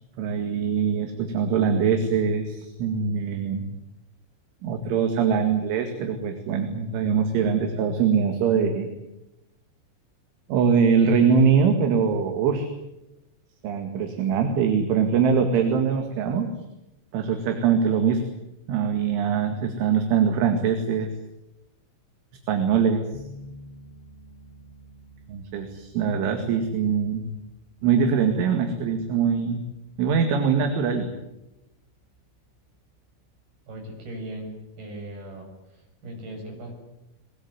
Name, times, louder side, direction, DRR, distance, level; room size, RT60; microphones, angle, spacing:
voice 1, 0.2-3.6 4.6-8.9 10.5-12.7 13.6-16.5 17.1-18.2 18.7-21.1 22.5-23.0 25.3-27.3 27.8-29.6 30.0-31.1, right 6 dB, 70° right, 6 dB, 4.4 m, -22 dB
sound 1, 23.1-34.0, left 2 dB, 60° left, 3.3 m, -51 dB
voice 2, 33.7-35.5 36.0-36.7, right 1 dB, 50° right, 2 dB, 8.7 m, -38 dB
22.5 x 21.5 x 9.6 m, 0.92 s
omnidirectional pair, 5.8 m